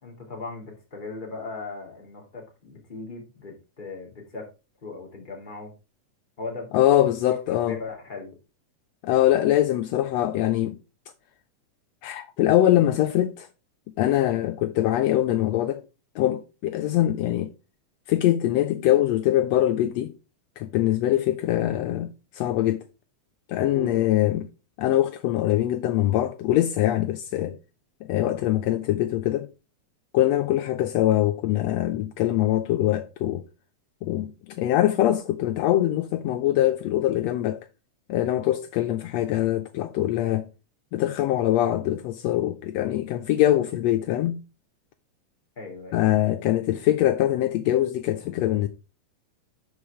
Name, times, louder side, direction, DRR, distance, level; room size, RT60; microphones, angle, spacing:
voice 1, 0.0-4.5 4.8-5.7 6.4-7.2 7.5-8.4 23.6-24.1 45.6-46.2, left 3 dB, 15° left, 2.4 m, -38 dB
voice 2, 6.7-7.8 9.0-10.8 12.0-13.5 14.0-15.8 16.1-17.5 18.1-20.1 20.6-22.8 23.5-24.4 24.8-27.6 28.1-29.5 30.1-33.4 34.0-37.7 38.1-40.5 40.9-44.4 45.9-48.7, left 13 dB, 80° left, 1.5 m, -23 dB
11.5 x 4.9 x 3.5 m
omnidirectional pair, 3.5 m